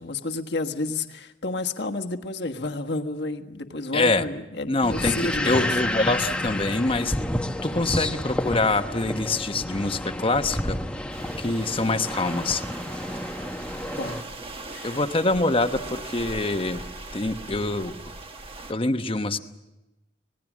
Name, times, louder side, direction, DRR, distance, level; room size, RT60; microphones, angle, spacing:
voice 1, 0.0-5.8 14.0-14.2 14.7-15.0, left 3 dB, 70° left, 4 dB, 1.5 m, -30 dB
voice 2, 3.9-4.2 4.7-7.2 7.6-10.8 11.4-12.6 14.8-16.9 17.1-18.0 18.7-19.4, left 2 dB, 30° left, 8 dB, 1.0 m, -25 dB
sound 1, 4.8-14.2, left 1 dB, 5° left, 0.9 m, -30 dB
sound 2, 11.1-18.7, right 2 dB, 35° right, 1.5 m, -40 dB
26.0 x 19.0 x 7.3 m, 0.99 s
head